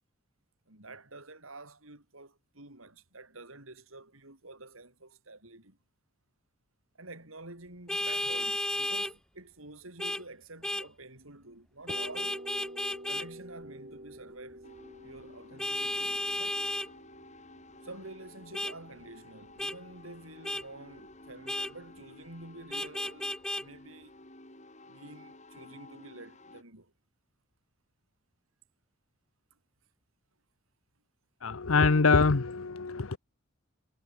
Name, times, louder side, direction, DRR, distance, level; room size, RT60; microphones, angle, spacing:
voice 1, 0.7-5.8 7.0-12.4 13.1-14.7 15.0-16.7 17.8-24.1 24.9-26.9, right 2 dB, 80° right, 6.7 m, -49 dB
Vehicle horn car horn honking, 7.9-9.1 10.0-10.2 10.6-10.9 11.9-13.3 15.6-16.9 18.5-18.7 19.6-19.8 20.4-20.6 21.5-21.7 22.7-23.6, left 1 dB, 5° left, 0.6 m, -33 dB
sound 1, 11.9-19.6, right 1 dB, 40° right, 5.3 m, -49 dB
sound 2, 14.6-26.6, left 2 dB, 35° left, 7.8 m, -53 dB
voice 2, 31.4-33.2, left 4 dB, 85° left, 0.9 m, -24 dB
head